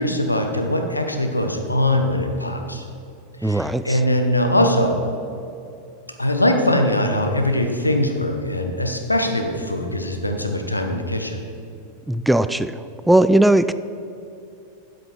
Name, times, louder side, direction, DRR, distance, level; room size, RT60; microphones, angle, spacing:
voice 1, 0.0-2.8 3.4-5.0 6.2-11.4, left 1 dB, 85° left, 5 dB, 1.1 m, -21 dB
voice 2, 3.4-4.0 12.1-12.8 13.1-13.7, right 1 dB, 5° right, 13 dB, 0.3 m, -18 dB
12.5 x 8.0 x 4.5 m, 2.6 s
figure-of-eight pair, 90°, 0 cm